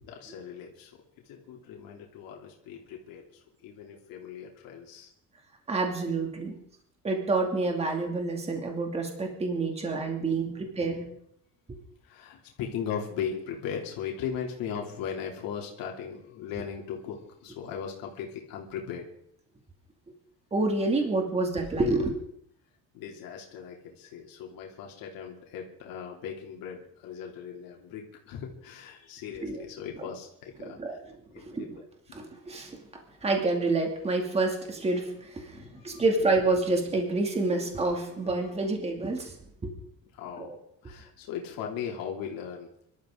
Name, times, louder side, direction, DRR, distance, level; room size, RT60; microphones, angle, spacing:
voice 1, 0.1-0.9 1.2-5.1 9.8-9.9 10.3-10.8 12.0-19.1 22.9-31.0 31.3-31.8 35.5-36.0 40.1-40.6 40.8-42.7, left 7 dB, 80° left, 0 dB, 3.1 m, -38 dB
voice 2, 5.7-6.6 7.0-11.1 20.5-22.1 29.4-29.6 30.0-30.1 30.6-31.0 31.4-31.8 32.1-32.8 33.2-39.4 39.6-39.7 40.4-40.6, right 3 dB, 20° right, 2 dB, 2.6 m, -28 dB
24.5 x 13.0 x 3.9 m, 0.71 s
cardioid pair, 150°, 34 cm